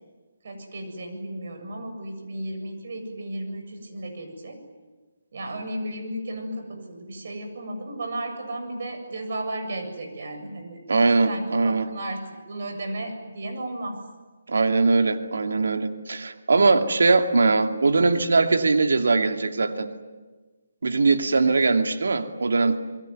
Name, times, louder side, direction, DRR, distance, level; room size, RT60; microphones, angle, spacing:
voice 1, 0.4-4.6 5.3-10.8 11.2-12.2 12.5-14.0 21.3-21.5, right 1 dB, 55° right, 5 dB, 7.6 m, -34 dB
voice 2, 10.9-11.9 14.5-19.9 20.8-22.8, right 3 dB, 80° right, 6 dB, 2.7 m, -21 dB
28.5 x 22.0 x 9.4 m, 1.3 s
hypercardioid pair, 165°, 0 cm